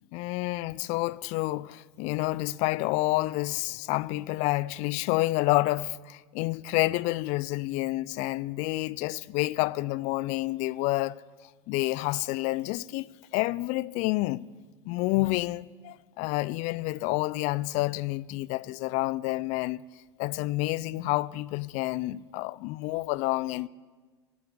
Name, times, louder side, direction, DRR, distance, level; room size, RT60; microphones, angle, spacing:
voice 1, 0.0-11.2 11.7-13.1 13.3-14.5 14.8-19.8 20.2-23.7, left 19 dB, 50° left, 0.4 m, -29 dB
8.7 x 8.6 x 8.5 m
hypercardioid pair, 90°, 15 cm